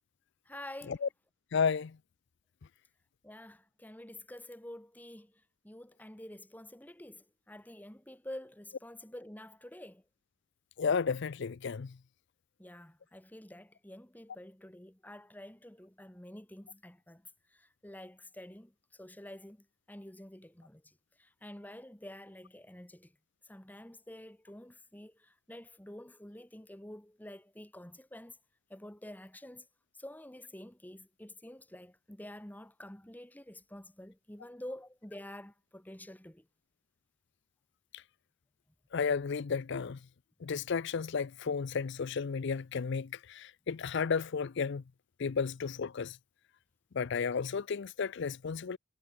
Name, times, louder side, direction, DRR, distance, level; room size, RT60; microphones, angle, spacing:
voice 1, 0.4-1.0 3.2-10.0 12.6-17.2 17.5-23.1 23.4-28.4 28.7-29.7 30.0-36.5, left 1 dB, 10° left, 1.2 m, -49 dB
voice 2, 1.5-2.0 10.8-11.9 37.9-38.0 38.9-40.0 40.4-44.8 45.2-46.2 46.9-48.8, left 5 dB, 55° left, 0.5 m, -33 dB
head